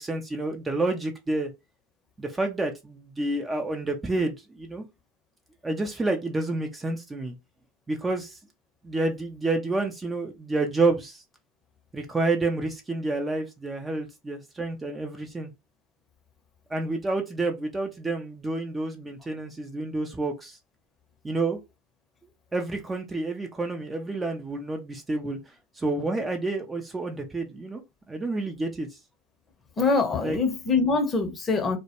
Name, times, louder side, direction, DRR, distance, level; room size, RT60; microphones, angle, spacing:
voice 1, 0.0-1.5 2.2-4.9 5.6-7.3 7.9-8.4 8.8-11.2 11.9-15.5 16.7-20.6 21.2-21.6 22.5-25.4 25.8-27.8 28.1-28.9 30.2-30.4, right 2 dB, 15° right, 0.5 m, -29 dB
voice 2, 29.8-31.8, left 4 dB, 25° left, 0.7 m, -24 dB
2.2 x 2.1 x 2.8 m
hypercardioid pair, 85°, 0 cm